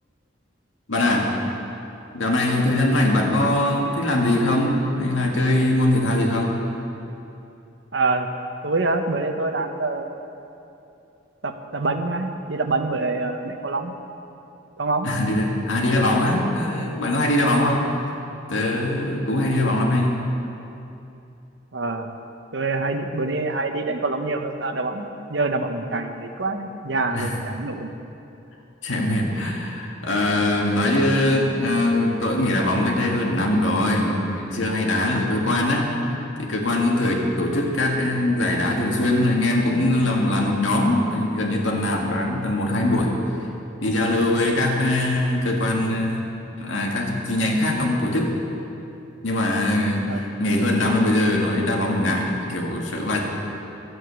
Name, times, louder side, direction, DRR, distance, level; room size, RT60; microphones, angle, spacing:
voice 1, 0.9-1.4 2.1-6.6 15.0-17.9 18.5-20.2 27.1-27.3 28.8-35.9 36.4-43.1 43.8-46.3 46.6-48.3 49.2-53.2, left 1 dB, 80° left, -1 dB, 2.0 m, -22 dB
voice 2, 7.9-8.3 8.6-10.2 11.4-14.0 14.8-15.1 21.7-22.2 22.5-27.9 50.1-50.2, right 3 dB, 65° right, 6 dB, 0.9 m, -26 dB
12.5 x 8.0 x 8.1 m, 2.8 s
head